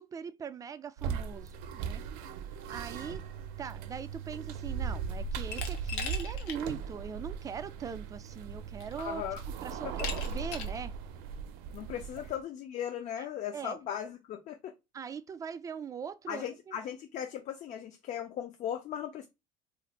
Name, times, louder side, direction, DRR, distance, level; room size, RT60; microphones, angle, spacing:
voice 1, 0.0-2.0 2.7-3.2 3.6-9.2 9.6-10.9 13.5-13.8 14.9-16.8, right 6 dB, 20° right, 0.3 m, -41 dB
sound 1, 1.0-12.4, right 6 dB, 75° right, 0.5 m, -38 dB
Glass, 5.5-6.6 7.0-7.1 8.2-8.3 8.8-9.2 10.0-10.8, left 7 dB, 90° left, 0.9 m, -39 dB
voice 2, 9.0-9.4 9.8-9.9 11.7-14.7 16.3-19.3, left 9 dB, 50° left, 0.5 m, -37 dB
2.5 x 2.4 x 4.0 m
cardioid pair, 120°, 16 cm